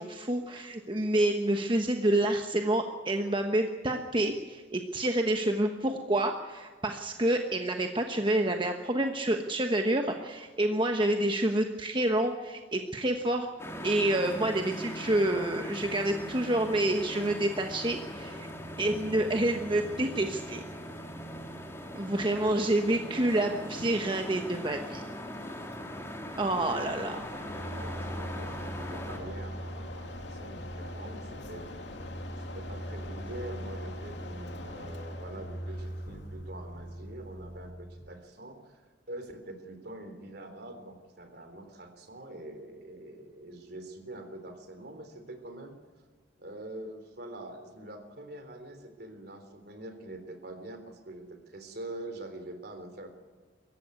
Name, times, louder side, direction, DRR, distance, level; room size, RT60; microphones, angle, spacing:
voice 1, 0.0-13.5 13.8-18.5 18.8-20.6 21.9-25.0 26.4-27.2, right 1 dB, 25° right, 4 dB, 1.2 m, -28 dB
sound 1, 13.6-29.2, equal, 15° left, 2.7 m, -40 dB
voice 2, 22.0-22.3 23.3-23.6 26.3-26.8 27.5-31.7 32.4-45.8 46.4-53.1, right 1 dB, 60° right, 7 dB, 3.5 m, -45 dB
Mechanisms, 25.3-37.7, left 2 dB, 70° left, 2.6 m, -45 dB
sound 2, 27.5-38.1, right 1 dB, 40° left, 5.6 m, -41 dB
23.5 x 15.0 x 9.6 m, 1.5 s
head